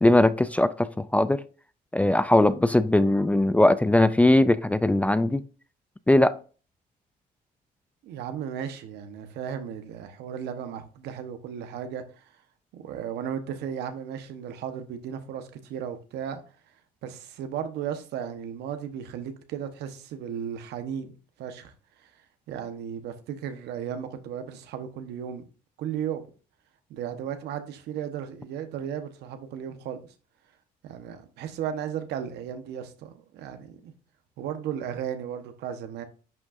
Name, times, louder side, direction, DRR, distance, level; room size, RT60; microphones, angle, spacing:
voice 1, 0.0-1.4 1.9-5.4 6.1-6.4, left 1 dB, 10° left, 0.4 m, -20 dB
voice 2, 8.0-12.3 12.7-16.4 17.0-21.1 21.4-21.7 22.0-22.1 22.5-25.4 25.8-26.3 26.9-30.0 30.8-33.9 34.4-36.0, right 8 dB, 80° right, 1.1 m, -35 dB
10.5 x 6.2 x 2.6 m
cardioid pair, 110°, 17 cm